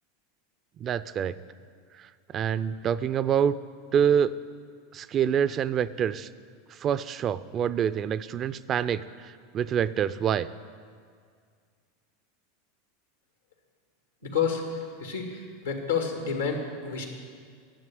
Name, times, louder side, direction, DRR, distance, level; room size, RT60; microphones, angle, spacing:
voice 1, 0.8-1.4 2.0-2.1 2.3-3.6 3.9-4.4 4.9-6.3 6.7-10.5, right 8 dB, 35° right, 15 dB, 0.4 m, -26 dB
voice 2, 14.2-17.1, left 6 dB, 85° left, 2 dB, 2.0 m, -30 dB
11.5 x 7.6 x 9.1 m, 2.1 s
hypercardioid pair, 85°, 0 cm